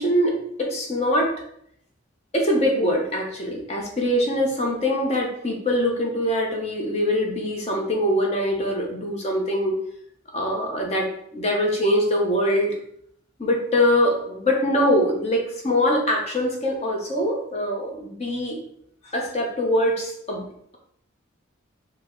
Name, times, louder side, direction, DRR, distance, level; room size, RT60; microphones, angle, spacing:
voice 1, 0.0-1.3 2.3-9.8 10.3-12.7 13.4-18.6 19.0-20.5, equal, 30° left, 0 dB, 0.7 m, -23 dB
4.5 x 2.1 x 3.8 m, 0.69 s
head